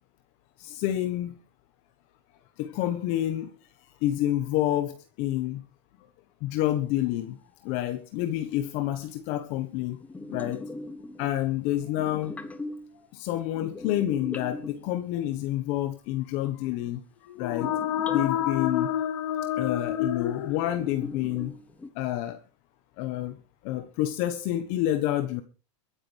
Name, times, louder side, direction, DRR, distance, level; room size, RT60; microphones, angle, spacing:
voice 1, 0.6-1.4 2.6-3.5 4.0-5.6 6.4-7.4 7.6-10.0 10.3-10.6 11.2-12.4 13.1-17.0 17.4-17.7 18.1-18.9 19.6-21.5 21.9-22.4 23.0-23.4 23.6-25.4, left 13 dB, 50° left, 1.3 m, -28 dB
sound 1, 10.0-11.6 11.8-13.0 13.5-15.3 17.5-18.7 20.1-20.2 20.6-21.9, left 2 dB, 10° left, 1.1 m, -40 dB
sound 2, 17.3-21.1, left 10 dB, 80° left, 1.6 m, -29 dB
23.5 x 10.0 x 3.4 m
supercardioid pair, 145°, 15 cm